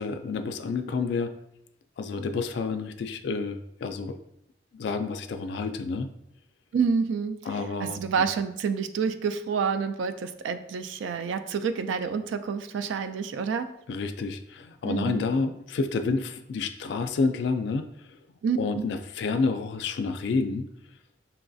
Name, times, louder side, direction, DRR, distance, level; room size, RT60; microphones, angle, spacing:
voice 1, 0.0-1.3 2.0-4.2 4.7-6.1 7.5-8.0 13.9-17.9 18.5-20.7, left 4 dB, 70° left, 8 dB, 0.3 m, -29 dB
voice 2, 6.7-7.5 7.8-13.7 14.9-15.3 18.4-18.9, right 6 dB, 90° right, 10 dB, 0.3 m, -28 dB
5.7 x 2.3 x 2.5 m, 0.79 s
head